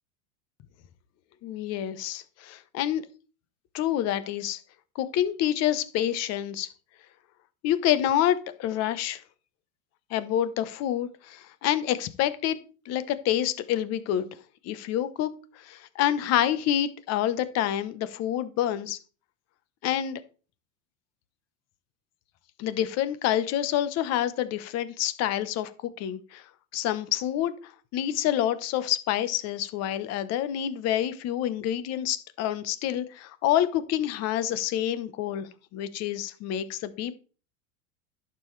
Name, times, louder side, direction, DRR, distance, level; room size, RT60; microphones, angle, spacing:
voice 1, 1.4-3.0 3.7-4.6 4.9-6.7 7.6-9.2 10.1-12.6 12.8-14.3 14.6-15.3 15.6-19.0 19.8-20.2 22.6-25.7 26.0-26.4 26.7-27.5 27.9-37.1, left 11 dB, 40° left, 14 dB, 1.0 m, -27 dB
11.0 x 7.0 x 3.2 m, 0.37 s
supercardioid pair, 135°, 40 cm